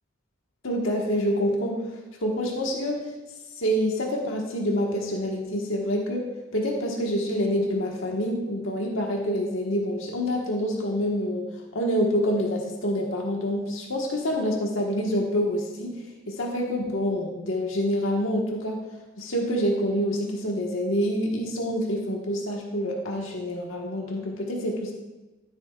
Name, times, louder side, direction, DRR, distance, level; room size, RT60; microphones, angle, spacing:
voice 1, 0.6-1.8 2.2-3.0 3.6-6.3 6.5-11.5 11.7-15.9 16.3-18.8 19.2-24.9, equal, 85° left, -1 dB, 1.5 m, -27 dB
13.5 x 7.9 x 2.4 m, 1.1 s
head